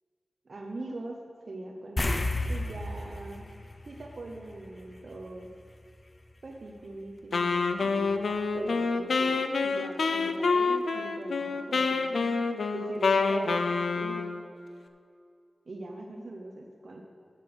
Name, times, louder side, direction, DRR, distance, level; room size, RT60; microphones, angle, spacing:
voice 1, 0.4-1.2 1.5-3.5 3.8-5.5 6.4-12.3 12.7-14.3 15.7-17.0, right 2 dB, 65° right, 1 dB, 0.9 m, -42 dB
sound 1, 2.0-4.8 5.1-5.2 8.1-8.2 8.6-8.7, left 2 dB, 35° left, 0.8 m, -32 dB
Wind instrument woodwind instrument, 7.3-14.5, left 4 dB, 90° left, 0.5 m, -27 dB
10.5 x 6.8 x 6.2 m, 2.4 s
wide cardioid pair, 85°, 0 cm